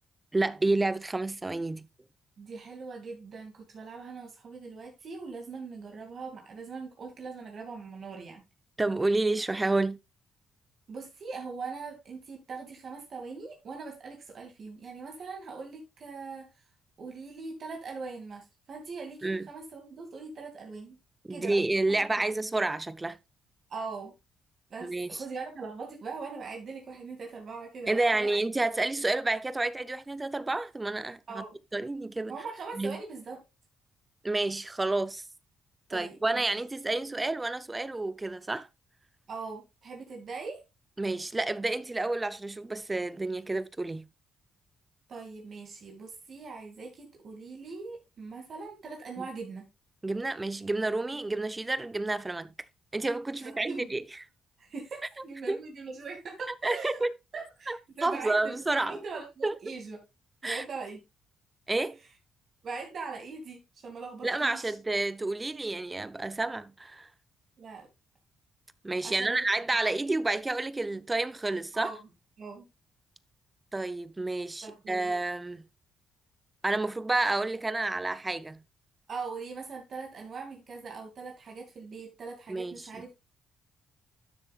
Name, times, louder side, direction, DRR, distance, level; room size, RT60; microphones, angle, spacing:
voice 1, 0.3-1.9 8.8-10.0 19.2-19.5 21.3-23.2 24.8-25.2 27.9-31.4 31.7-32.4 32.8-33.0 34.2-35.2 35.9-38.7 41.0-44.1 49.2-49.3 50.0-52.5 52.9-54.0 55.5-55.6 56.6-57.1 57.7-59.0 59.4-59.6 60.4-60.6 61.7-62.0 64.2-67.1 68.8-71.9 73.7-75.6 76.6-78.6 82.5-82.9, right 2 dB, 20° right, 0.6 m, -30 dB
voice 2, 2.4-8.4 10.9-16.5 17.0-21.0 21.3-21.6 21.9-22.0 22.3-22.4 23.7-24.1 24.7-28.4 31.3-31.6 32.3-33.4 35.9-36.4 39.3-40.6 45.1-49.7 53.4-53.9 54.6-57.1 57.3-60.0 60.4-61.0 62.6-64.8 67.6-67.9 69.0-69.4 71.7-72.0 72.4-72.7 74.6-75.1 79.1-83.2, right 4 dB, 55° right, 2.5 m, -41 dB
12.5 x 6.9 x 2.4 m
cardioid pair, 90°, 0 cm